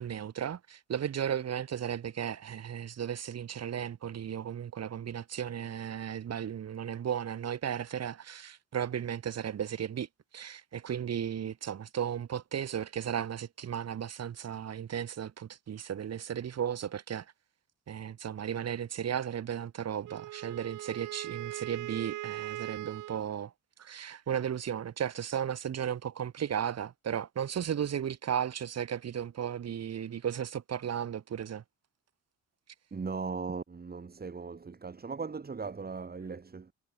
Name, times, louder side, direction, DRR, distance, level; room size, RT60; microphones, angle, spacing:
voice 1, 0.0-10.1 10.3-17.3 17.9-23.5 23.8-31.6, right 9 dB, 55° right, 3.7 m, -35 dB
Wind instrument woodwind instrument, 20.0-23.3, right 16 dB, 90° right, 3.3 m, -40 dB
voice 2, 32.9-36.7, right 5 dB, 30° right, 4.2 m, -38 dB
cardioid pair, 90°, 30 cm